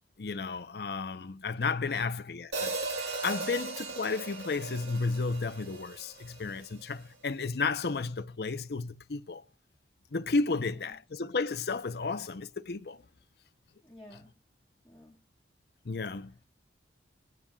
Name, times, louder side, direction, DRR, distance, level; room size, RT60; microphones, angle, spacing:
voice 1, 0.2-2.8 3.2-9.4 10.1-13.0 15.8-16.3, left 4 dB, 60° left, 0.6 m, -33 dB
Hi-hat, 2.5-6.7, right 3 dB, 80° right, 2.3 m, -37 dB
voice 2, 13.8-14.3 14.8-15.2, left 1 dB, 5° left, 2.6 m, -53 dB
23.0 x 9.4 x 2.3 m
head